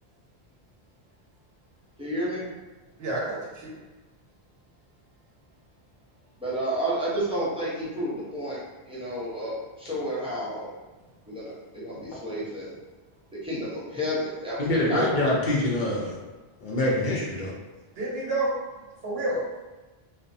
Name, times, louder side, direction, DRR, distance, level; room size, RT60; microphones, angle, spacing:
voice 1, 2.0-2.5 6.4-8.6 8.9-10.7 11.3-12.8 13.4-14.6 14.9-15.1, equal, 5° right, -9 dB, 0.5 m, -31 dB
voice 2, 3.0-3.7 18.0-18.5 19.0-19.4, right 2 dB, 70° right, -4 dB, 0.9 m, -29 dB
voice 3, 14.6-16.2 16.6-17.5, left 1 dB, 55° left, -5 dB, 0.6 m, -25 dB
2.5 x 2.0 x 2.6 m, 1.2 s
omnidirectional pair, 1.1 m